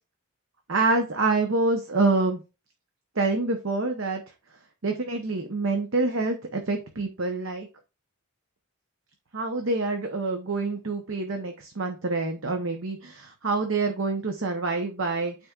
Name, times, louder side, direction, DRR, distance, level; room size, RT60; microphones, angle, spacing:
voice 1, 0.7-2.4 3.2-4.2 4.8-7.7 9.3-15.3, right 3 dB, 60° right, 4 dB, 0.9 m, -26 dB
12.5 x 4.2 x 2.4 m, 0.30 s
head